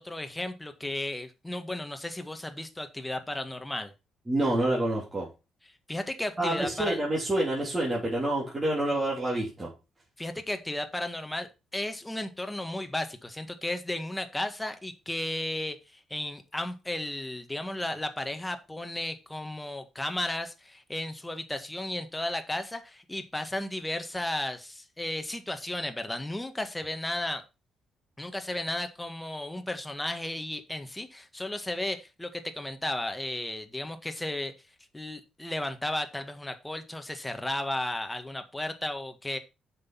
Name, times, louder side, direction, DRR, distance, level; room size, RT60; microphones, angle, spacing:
voice 1, 0.0-3.9 5.9-7.0 10.2-11.5 11.7-27.4 28.2-34.5 34.9-39.4, left 1 dB, 10° left, 7 dB, 1.7 m, -34 dB
voice 2, 4.3-5.3 6.4-9.7, right 1 dB, 20° right, -5 dB, 3.4 m, -27 dB
7.4 x 6.2 x 5.8 m, 0.28 s
cardioid pair, 90°, 0 cm